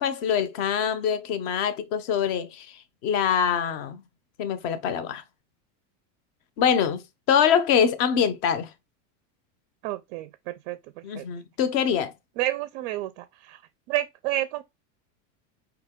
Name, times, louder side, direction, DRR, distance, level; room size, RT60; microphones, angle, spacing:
voice 1, 0.0-2.7 3.0-4.0 4.4-5.2 6.6-8.7 11.0-12.1, left 8 dB, 40° left, 0.6 m, -24 dB
voice 2, 9.8-10.8 11.1-11.3 12.4-13.6 13.9-14.6, right 14 dB, 45° right, 0.4 m, -30 dB
4.9 x 2.9 x 3.5 m
supercardioid pair, 170°, 39 cm